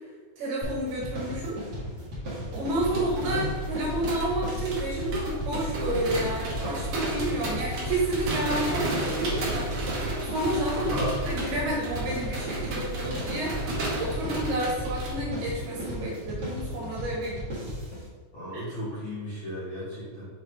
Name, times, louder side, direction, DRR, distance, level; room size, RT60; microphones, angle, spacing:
voice 1, 0.4-1.6 2.5-9.7 10.2-10.9 11.3-13.6 14.0-17.7 18.5-18.6, right 1 dB, 70° right, -3 dB, 2.6 m, -30 dB
sound 1, 0.6-18.1, equal, 55° right, 1.1 m, -36 dB
sound 2, 2.6-15.1, right 1 dB, 85° right, 1.4 m, -33 dB
voice 2, 2.9-3.5 10.7-11.2 18.3-20.3, equal, 75° left, -11 dB, 1.1 m, -34 dB
6.5 x 4.5 x 3.4 m, 1.4 s
omnidirectional pair, 5.3 m